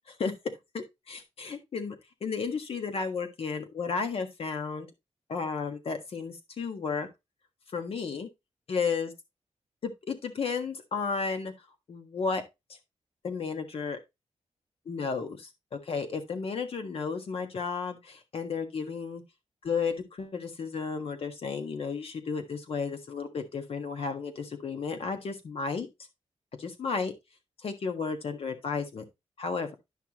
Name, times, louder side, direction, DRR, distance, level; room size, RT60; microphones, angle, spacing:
voice 1, 0.7-4.9 5.3-7.1 7.7-8.3 8.7-9.1 9.8-11.5 11.9-12.4 13.2-14.0 14.8-19.2 19.6-25.9 26.6-27.1 27.6-29.0 29.4-29.7, left 5 dB, 60° left, 1.5 m, -33 dB
10.5 x 5.8 x 3.0 m
wide cardioid pair, 180°, 11 cm